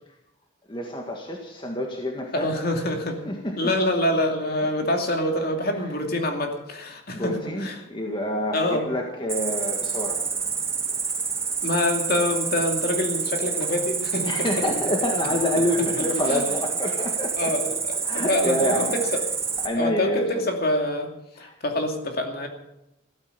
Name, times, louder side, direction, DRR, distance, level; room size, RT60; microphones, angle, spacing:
voice 1, 0.7-2.5 3.3-3.7 4.6-4.7 7.1-10.2 14.3-17.5 18.0-18.9 19.6-20.5 21.4-21.5, left 1 dB, 25° left, 1 dB, 1.7 m, -27 dB
voice 2, 2.3-3.2 3.6-7.4 7.6-7.8 8.5-8.8 11.6-14.3 16.0-16.4 17.4-17.7 18.1-19.0 19.8-21.1 21.4-22.5, left 1 dB, 50° left, 3 dB, 2.6 m, -25 dB
Cricket, 9.3-19.7, right 5 dB, 15° right, 1.8 m, -28 dB
15.5 x 13.5 x 6.7 m, 0.90 s
head